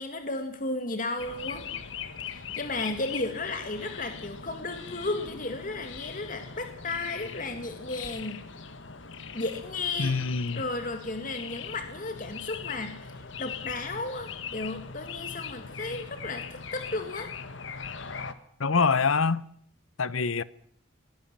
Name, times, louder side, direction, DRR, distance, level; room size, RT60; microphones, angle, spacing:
voice 1, 0.0-1.7 2.3-8.4 9.3-10.2 10.6-13.0 13.4-17.3, left 2 dB, 40° left, 2.2 m, -34 dB
sound 1, 1.2-18.3, left 6 dB, 65° left, 1.5 m, -41 dB
voice 2, 10.0-10.6 18.6-19.4 20.0-20.4, left 4 dB, 85° left, 0.9 m, -25 dB
21.5 x 19.5 x 7.5 m
head